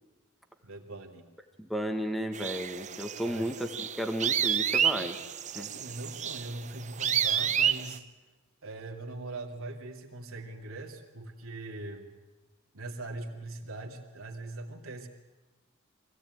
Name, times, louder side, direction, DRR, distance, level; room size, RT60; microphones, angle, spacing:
voice 1, 0.6-1.3 3.2-3.6 5.5-8.0 8.6-12.1 12.7-15.1, right 2 dB, 70° right, 1 dB, 2.5 m, -41 dB
voice 2, 1.6-5.2 5.6-5.7, equal, ahead, 6 dB, 1.7 m, -33 dB
sound 1, 2.3-8.0, right 9 dB, 35° right, 0.7 m, -30 dB
23.5 x 16.5 x 9.4 m, 1.2 s
head